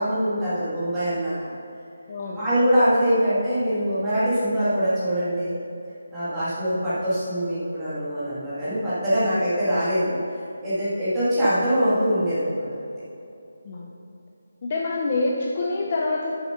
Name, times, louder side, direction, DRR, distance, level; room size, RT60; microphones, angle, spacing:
voice 1, 0.0-1.5 2.3-5.6 6.1-10.2 10.6-12.7, equal, 5° right, -13 dB, 1.8 m, -23 dB
voice 2, 2.1-2.4 9.2-9.3 13.6-13.9 14.6-16.3, left 3 dB, 25° left, -1 dB, 0.5 m, -26 dB
7.4 x 6.5 x 5.7 m, 2.7 s
figure-of-eight pair, 180°, 0 cm